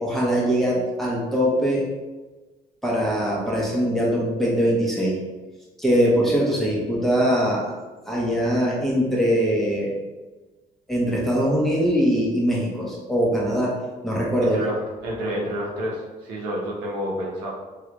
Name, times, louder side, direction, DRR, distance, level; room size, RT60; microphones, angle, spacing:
voice 1, 0.0-1.9 2.8-5.2 5.8-7.7 8.1-9.9 10.9-13.7 14.0-14.6, equal, ahead, -5 dB, 1.1 m, -22 dB
voice 2, 14.4-17.5, equal, 85° right, -3 dB, 0.8 m, -29 dB
3.0 x 2.5 x 3.0 m, 1.2 s
supercardioid pair, 80°, 18 cm